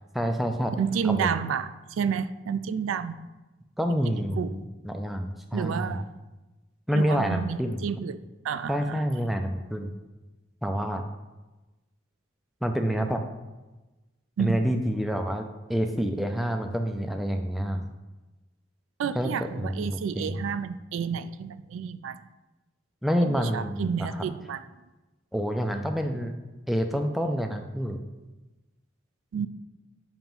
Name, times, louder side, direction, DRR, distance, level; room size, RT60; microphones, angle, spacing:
voice 1, 0.1-0.7 1.0-1.3 3.8-6.0 6.9-7.8 8.7-9.9 10.6-11.0 12.6-13.2 14.4-17.9 19.1-19.3 19.6-20.3 23.0-24.1 25.3-26.3 26.7-28.0, equal, ahead, 5 dB, 0.3 m, -28 dB
voice 2, 0.8-3.3 4.1-4.6 5.5-6.1 6.9-8.2 8.4-9.0 14.4-14.6 19.0-22.2 23.2-24.6 29.3-29.5, right 7 dB, 80° right, 13 dB, 0.3 m, -30 dB
7.2 x 2.9 x 5.4 m, 1.1 s
head